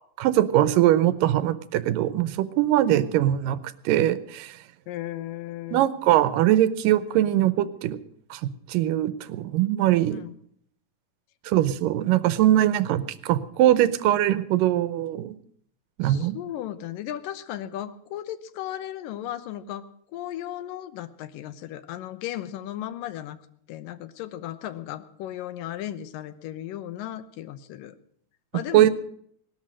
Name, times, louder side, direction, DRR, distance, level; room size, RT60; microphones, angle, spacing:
voice 1, 0.2-3.6 3.9-4.6 5.7-8.0 8.3-10.2 11.5-15.4 16.0-16.4 28.7-28.9, right 13 dB, 90° right, 16 dB, 2.5 m, -22 dB
voice 2, 4.9-5.9 10.1-10.4 16.0-19.9 20.1-23.4 23.7-28.0 28.5-28.9, left 12 dB, 90° left, 14 dB, 2.6 m, -35 dB
18.5 x 12.0 x 6.3 m, 0.66 s
omnidirectional pair, 3.8 m